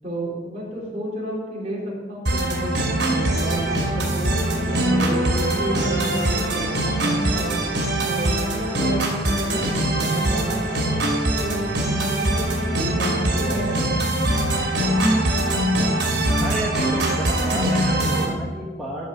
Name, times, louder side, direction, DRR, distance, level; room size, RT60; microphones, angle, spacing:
voice 1, 0.0-1.8 2.1-2.7 3.0-7.7 8.0-9.6 9.9-10.9 11.4-13.9, equal, 35° right, -5 dB, 3.5 m, -31 dB
sound 1, 2.3-18.3, right 1 dB, 70° right, 2.7 m, -22 dB
voice 2, 16.4-19.1, right 1 dB, ahead, -6 dB, 1.2 m, -31 dB
13.0 x 4.8 x 6.6 m, 1.4 s
head